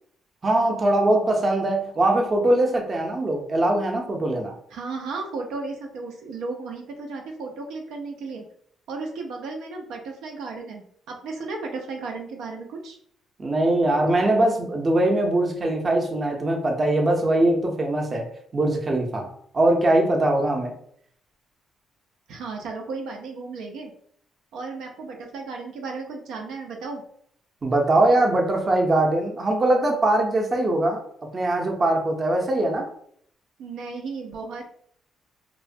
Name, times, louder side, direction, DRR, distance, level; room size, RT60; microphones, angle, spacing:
voice 1, 0.4-4.6 13.4-18.3 18.5-20.8 27.6-31.0 31.3-32.9, right 1 dB, 35° right, 2 dB, 0.6 m, -21 dB
voice 2, 4.7-8.4 8.9-13.0 22.3-23.9 24.5-27.0 33.6-34.7, right 3 dB, 85° right, 1 dB, 0.5 m, -34 dB
3.0 x 2.1 x 2.6 m, 0.65 s
cardioid pair, 90°, 0 cm